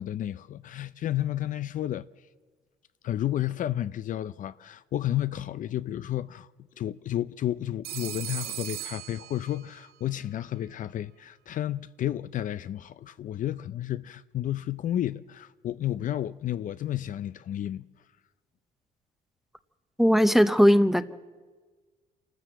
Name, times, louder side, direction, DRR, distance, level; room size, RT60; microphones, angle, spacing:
voice 1, 0.0-2.1 3.0-6.5 6.8-17.9, left 12 dB, 50° left, 0.5 m, -31 dB
Telephone, 7.8-9.9, right 14 dB, 65° right, 1.0 m, -38 dB
voice 2, 20.0-21.0, equal, ahead, 0.8 m, -19 dB
27.0 x 13.0 x 7.9 m
cardioid pair, 110°, 17 cm